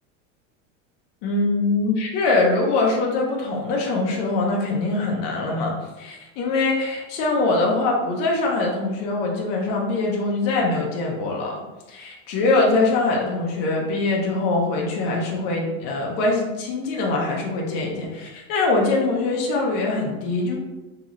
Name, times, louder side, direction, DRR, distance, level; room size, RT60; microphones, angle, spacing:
voice 1, 1.2-20.6, left 3 dB, 30° left, -1 dB, 0.4 m, -23 dB
3.0 x 2.7 x 2.4 m, 1.1 s
supercardioid pair, 170°, 40 cm